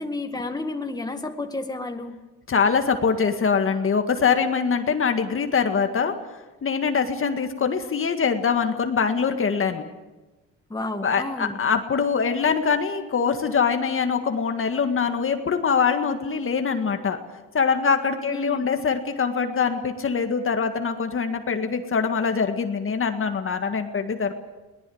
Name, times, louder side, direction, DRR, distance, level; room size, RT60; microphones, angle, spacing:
voice 1, 0.0-2.2 10.7-11.6 18.3-18.7, left 2 dB, 15° left, 5 dB, 2.0 m, -31 dB
voice 2, 2.5-6.2 6.6-9.9 11.0-17.2 17.5-24.3, left 6 dB, 45° left, 6 dB, 1.9 m, -23 dB
22.5 x 18.5 x 8.0 m, 1.1 s
cardioid pair, 90°, 30 cm